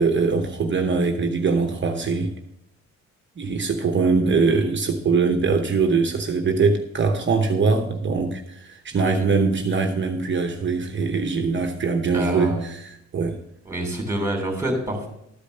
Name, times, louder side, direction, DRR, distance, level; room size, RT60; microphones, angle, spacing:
voice 1, 0.0-2.3 3.4-13.4, right 4 dB, 40° right, 5 dB, 0.9 m, -22 dB
voice 2, 4.4-4.7 9.0-9.3 12.1-12.7 13.6-15.1, right 1 dB, 10° right, 2 dB, 3.0 m, -27 dB
12.5 x 5.1 x 6.6 m, 0.79 s
cardioid pair, 110°, 29 cm